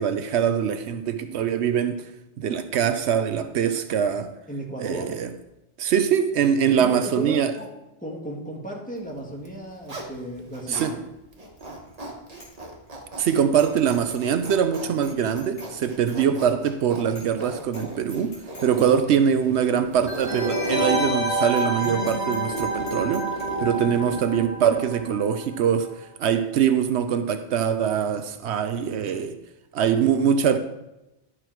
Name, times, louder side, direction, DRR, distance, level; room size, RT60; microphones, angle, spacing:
voice 1, 0.0-2.1 2.4-4.3 4.8-5.3 5.8-7.5 10.7-10.9 13.2-18.3 18.6-23.3 23.6-25.9 26.2-29.4 29.7-30.6, right 8 dB, 80° right, 0.9 m, -23 dB
voice 2, 4.5-5.1 6.7-7.7 8.0-11.0 18.7-19.0 23.6-24.0, right 1 dB, 5° left, 1.7 m, -35 dB
Zipper (clothing), 9.3-10.9 11.3-25.1, right 1 dB, 35° right, 1.4 m, -36 dB
Bicycle bell, 11.6-11.9 12.3-12.5 12.9-13.0 13.6-14.2 14.4-15.7 16.1-16.2 16.6-16.7 17.1-17.4 17.7-17.8 18.1-18.9 19.3-19.4 20.2-20.3 20.5-20.6 21.0-21.1 21.5-23.4, equal, 80° left, 3.0 m, -45 dB
sound 1, 20.1-25.5 25.8-25.9, right 1 dB, 30° left, 2.1 m, -29 dB
11.5 x 6.2 x 4.6 m
omnidirectional pair, 1.1 m